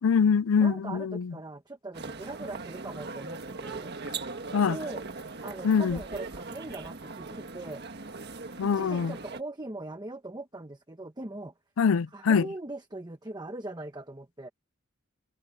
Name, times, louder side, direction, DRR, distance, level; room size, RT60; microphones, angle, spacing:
voice 1, 0.0-1.3 4.5-4.8 5.6-6.0 8.6-9.1 11.8-12.5, left 6 dB, 85° left, 0.4 m, -24 dB
voice 2, 0.6-3.9 4.6-5.0 5.4-7.8 8.6-11.5 12.1-14.5, right 2 dB, 20° right, 1.1 m, -40 dB
sound 1, 1.9-9.4, right 4 dB, 55° right, 1.5 m, -40 dB
head